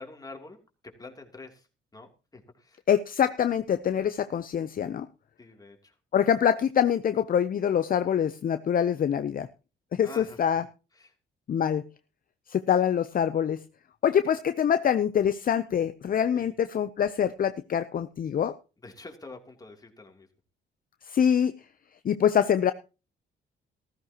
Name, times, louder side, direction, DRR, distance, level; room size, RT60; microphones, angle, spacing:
voice 1, 0.0-1.7 1.9-2.8 5.4-6.0 10.0-10.4 10.9-11.1 16.3-16.5 18.8-20.3, left 3 dB, 20° left, 3 dB, 3.0 m, -46 dB
voice 2, 2.9-5.1 6.1-9.5 9.9-10.6 11.5-11.8 12.5-13.6 14.0-18.6 21.0-21.5 22.0-22.7, left 8 dB, 45° left, 12 dB, 0.7 m, -25 dB
15.0 x 14.0 x 2.9 m, 0.32 s
cardioid pair, 90°, 20 cm